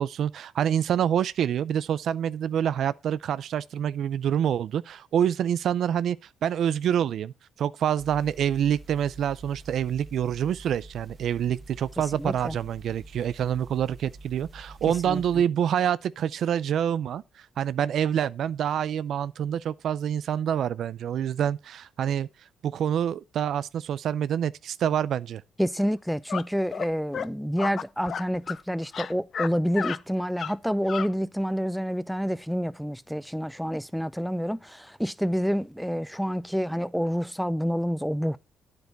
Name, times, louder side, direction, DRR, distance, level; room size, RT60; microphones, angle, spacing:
voice 1, 0.0-6.2 6.4-7.3 7.6-22.3 22.6-25.4, right 9 dB, 70° right, 0.4 m, -26 dB
sound 1, 8.0-15.4, right 2 dB, 35° right, 1.7 m, -47 dB
voice 2, 12.2-12.6 15.0-15.2 25.6-38.4, equal, ahead, 0.6 m, -28 dB
sound 2, 26.3-26.4 26.7-26.9 27.1-27.3 27.6-28.6 28.9-29.5 29.7-30.0 30.4-30.5 30.9-31.1, left 7 dB, 55° left, 0.6 m, -32 dB
9.5 x 8.0 x 4.1 m
cardioid pair, 90°, 0 cm